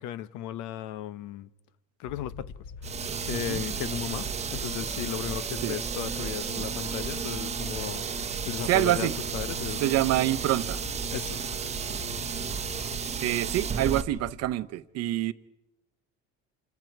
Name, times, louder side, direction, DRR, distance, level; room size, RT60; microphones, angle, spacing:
voice 1, 0.0-1.5 2.0-2.5 2.8-8.0 8.4-9.9 11.1-11.4, left 12 dB, 90° left, 0.9 m, -36 dB
sound 1, 2.0-14.6, left 5 dB, 40° left, 1.4 m, -44 dB
sound 2, 2.6-9.1, left 1 dB, 5° left, 2.7 m, -51 dB
sound 3, 2.8-14.0, right 6 dB, 20° right, 0.9 m, -33 dB
voice 2, 3.3-3.6 5.6-5.8 8.7-9.1 9.8-10.8 13.2-15.3, right 14 dB, 55° right, 0.8 m, -26 dB
28.5 x 27.5 x 4.7 m
cardioid pair, 160°, 30 cm